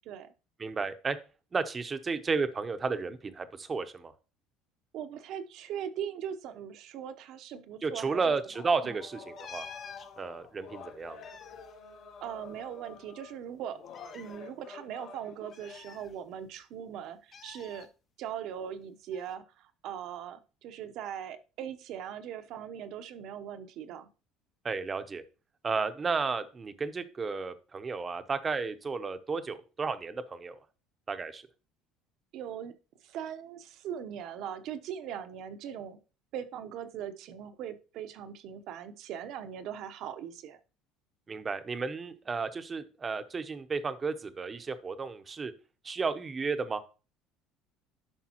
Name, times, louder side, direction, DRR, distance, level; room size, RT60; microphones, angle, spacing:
voice 1, 0.6-1.2 1.5-4.1 7.8-9.7 10.2-11.2 24.6-25.2 25.6-30.6 31.1-31.5 41.3-45.5 45.8-46.8, right 4 dB, 25° right, 10 dB, 0.7 m, -33 dB
voice 2, 4.9-8.2 8.8-8.9 12.2-13.8 14.1-17.9 18.2-24.1 32.3-32.7 33.0-36.0 36.3-40.6, right 9 dB, 60° right, 11 dB, 0.8 m, -40 dB
sound 1, 8.5-13.3 13.7-15.8, left 5 dB, 70° left, 2.4 m, -49 dB
sound 2, 9.4-10.1 11.0-12.7 12.9-13.0 13.9-14.4 15.5-16.6 17.3-17.9 19.1-19.4, left 6 dB, 35° left, 0.6 m, -48 dB
11.5 x 5.3 x 2.9 m, 0.33 s
cardioid pair, 135°, 0 cm